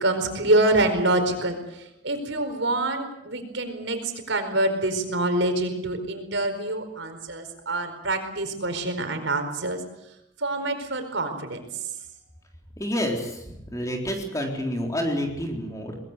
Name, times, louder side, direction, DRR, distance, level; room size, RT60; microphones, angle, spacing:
voice 1, 0.0-9.8 10.4-11.8, right 2 dB, 75° right, 6 dB, 4.7 m, -26 dB
voice 2, 12.8-16.0, equal, 15° left, 2 dB, 4.0 m, -29 dB
23.0 x 21.0 x 8.2 m, 0.83 s
head